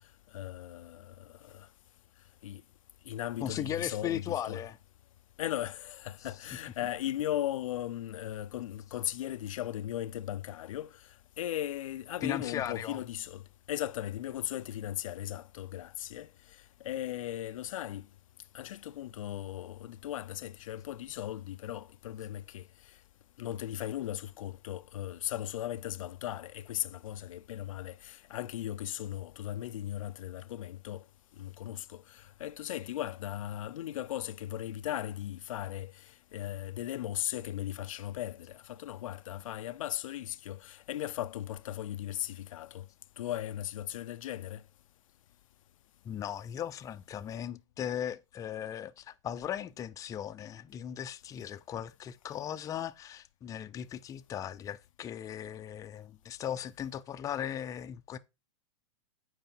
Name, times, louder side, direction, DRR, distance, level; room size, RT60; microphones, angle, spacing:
voice 1, 0.3-1.7 2.4-2.6 3.1-4.6 5.4-11.1 11.4-18.1 18.5-23.0 23.4-31.0 31.4-42.9 43.2-44.6, left 12 dB, 80° left, 0.4 m, -37 dB
voice 2, 3.4-4.8 12.2-13.0 46.0-58.2, left 10 dB, 20° left, 0.5 m, -37 dB
7.8 x 4.8 x 4.4 m
hypercardioid pair, 125°, 17 cm